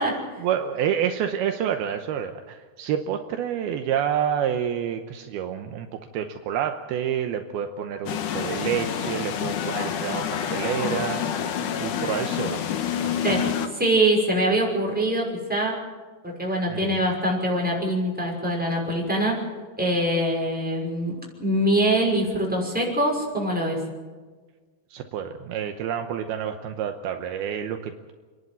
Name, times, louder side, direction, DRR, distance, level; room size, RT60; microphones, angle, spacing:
voice 1, 0.0-12.6 13.0-13.5 16.7-17.0 24.9-28.1, right 9 dB, 75° right, 6 dB, 2.7 m, -29 dB
sound 1, 8.1-13.7, left 8 dB, 65° left, 2.3 m, -28 dB
voice 2, 13.8-15.8 16.2-19.4 19.8-21.1 21.4-23.8, right 1 dB, ahead, -3 dB, 5.6 m, -23 dB
28.0 x 11.0 x 9.5 m, 1.4 s
omnidirectional pair, 4.7 m